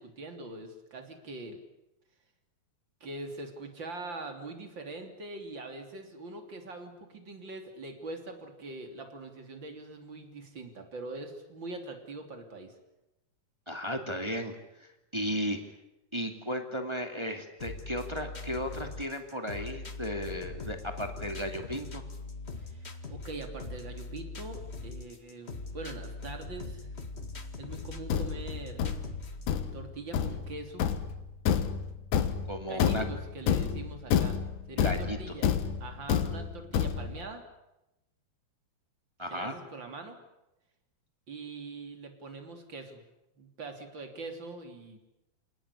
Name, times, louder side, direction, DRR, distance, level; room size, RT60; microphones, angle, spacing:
voice 1, 0.0-1.6 3.0-12.7 22.6-26.9 27.6-28.9 29.7-30.9 32.7-34.4 34.7-35.5 35.8-37.4 39.3-40.2 41.3-43.0 43.4-45.0, right 2 dB, 30° right, 5 dB, 3.5 m, -43 dB
voice 2, 13.6-15.6 16.1-22.0 32.5-33.0 34.8-35.2 39.2-39.5, equal, 10° right, 5 dB, 1.8 m, -35 dB
sound 1, 17.6-29.6, left 3 dB, 45° left, 0.8 m, -41 dB
Thump thud, 27.7-37.3, left 8 dB, 65° left, 2.6 m, -29 dB
28.5 x 18.5 x 10.0 m, 0.94 s
omnidirectional pair, 4.3 m